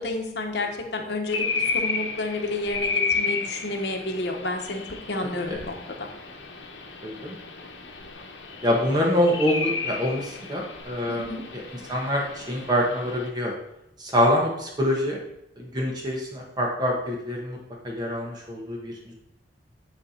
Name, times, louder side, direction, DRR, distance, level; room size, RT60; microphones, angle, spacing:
voice 1, 0.0-4.8 5.1-6.1 11.1-11.4, left 2 dB, 65° left, 2 dB, 1.0 m, -30 dB
sound 1, 1.3-13.3, left 4 dB, 85° left, 0.9 m, -32 dB
voice 2, 5.2-5.6 7.0-7.4 8.6-13.5 14.0-15.2 15.6-17.6 17.8-19.1, equal, 25° right, -1 dB, 1.4 m, -26 dB
9.8 x 3.4 x 4.3 m, 0.82 s
head